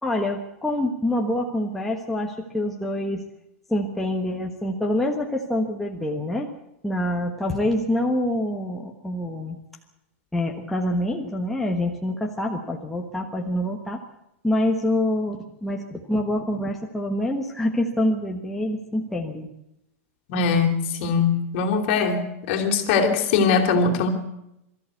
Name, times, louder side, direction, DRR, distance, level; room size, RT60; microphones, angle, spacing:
voice 1, 0.0-3.2 3.7-6.5 6.8-9.6 10.3-14.0 14.4-19.5, left 1 dB, 5° left, 0 dB, 1.3 m, -26 dB
voice 2, 20.3-22.2 22.5-24.1, left 5 dB, 45° left, 4 dB, 3.4 m, -21 dB
23.5 x 14.0 x 8.3 m, 0.85 s
supercardioid pair, 165°, 8 cm